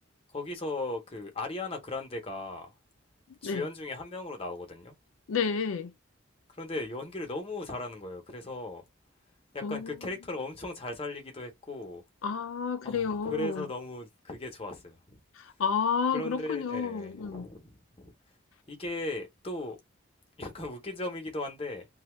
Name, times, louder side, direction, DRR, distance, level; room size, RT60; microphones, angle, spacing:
voice 1, 0.3-2.7 3.4-5.0 6.6-8.8 9.5-12.0 12.8-15.2 16.1-18.1 18.7-19.8 20.4-21.9, left 2 dB, 30° left, 0.8 m, -37 dB
voice 2, 5.3-5.9 9.6-10.0 12.2-13.7 15.4-17.5, left 6 dB, 85° left, 0.4 m, -30 dB
2.7 x 2.2 x 3.1 m
head